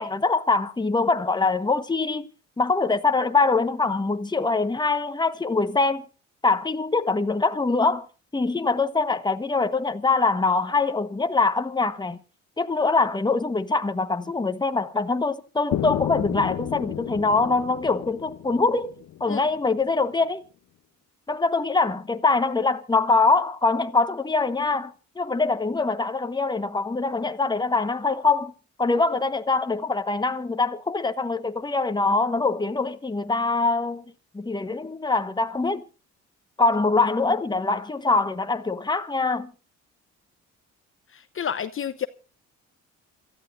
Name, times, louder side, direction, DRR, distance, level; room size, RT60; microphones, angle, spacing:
voice 1, 0.0-2.3 2.6-6.0 6.4-8.1 8.3-12.2 12.6-18.9 19.2-20.4 21.3-28.5 28.8-34.0 34.3-35.8 36.6-39.5, left 3 dB, 15° left, 1.2 m, -23 dB
sound 1, 15.7-19.6, left 12 dB, 65° left, 0.8 m, -32 dB
voice 2, 41.1-42.1, left 8 dB, 45° left, 0.9 m, -30 dB
27.5 x 14.0 x 2.6 m
cardioid pair, 90°, 30 cm